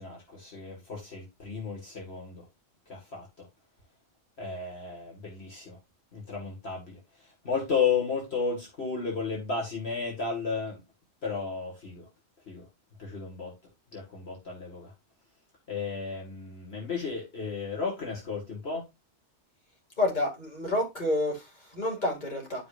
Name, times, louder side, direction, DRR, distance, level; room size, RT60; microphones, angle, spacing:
voice 1, 0.0-2.5 2.9-3.3 4.4-5.8 6.1-10.8 11.2-12.1 12.5-12.7 13.0-13.5 13.9-14.9 15.7-18.9, left 5 dB, 65° left, 2.4 m, -33 dB
voice 2, 20.0-22.7, left 1 dB, 40° left, 2.8 m, -29 dB
11.5 x 5.1 x 2.6 m
omnidirectional pair, 1.2 m